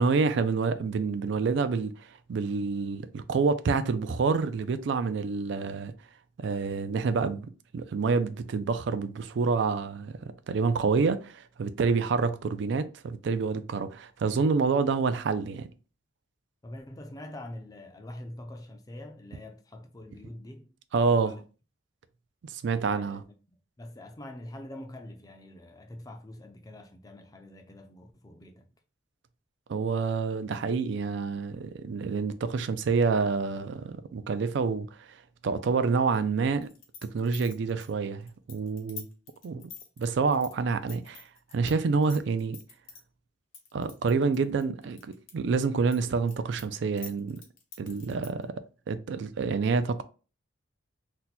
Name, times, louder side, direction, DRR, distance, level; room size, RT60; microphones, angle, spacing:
voice 1, 0.0-5.9 6.4-15.7 20.9-21.3 22.4-23.2 29.7-35.2 35.4-36.7 37.0-39.1 39.4-39.6 40.0-41.3 41.5-42.6 43.7-47.4 47.8-48.5 48.9-50.0, right 4 dB, 60° right, 0.3 m, -28 dB
voice 2, 16.6-20.7 21.1-21.4 22.8-23.2 23.8-28.7, left 1 dB, 20° left, 0.4 m, -44 dB
sound 1, 36.6-41.7 42.0-43.0 43.5-45.3 45.6-48.4, left 6 dB, 85° left, 1.0 m, -46 dB
2.7 x 2.2 x 4.0 m
head